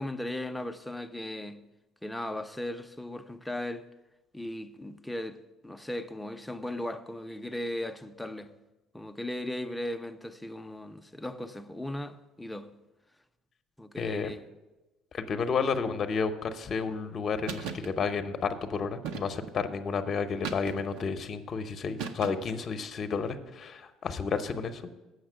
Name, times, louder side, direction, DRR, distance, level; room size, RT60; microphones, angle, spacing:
voice 1, 0.0-1.6 2.0-3.9 4.3-8.5 8.9-12.7 13.8-14.5, left 1 dB, 5° left, 0.6 m, -37 dB
voice 2, 14.0-14.3 15.1-24.9, left 5 dB, 40° left, 0.8 m, -31 dB
sound 1, 17.5-17.9 19.0-19.6 20.4-21.1 22.0-22.6, right 6 dB, 85° right, 0.7 m, -37 dB
8.0 x 5.9 x 7.6 m
supercardioid pair, 95°, 0 cm